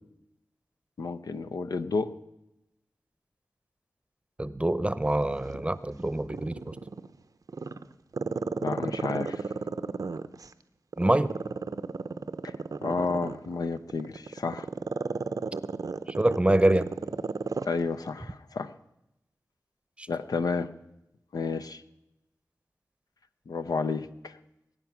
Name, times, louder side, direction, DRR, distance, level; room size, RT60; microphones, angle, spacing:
voice 1, 1.0-2.1 8.6-9.4 12.4-12.5 12.8-14.7 17.6-18.7 20.1-20.7 21.3-21.8 23.5-24.3, left 4 dB, 85° left, 10 dB, 0.6 m, -31 dB
voice 2, 4.4-6.8 11.0-11.3 16.1-16.9 20.0-20.1, right 1 dB, 20° right, 15 dB, 0.7 m, -25 dB
Growling, 5.3-7.1 7.5-10.5 10.9-17.7 18.1-18.2, right 4 dB, 70° right, 0.6 m, -33 dB
21.0 x 9.1 x 6.0 m, 0.89 s
wide cardioid pair, 55°, 6 cm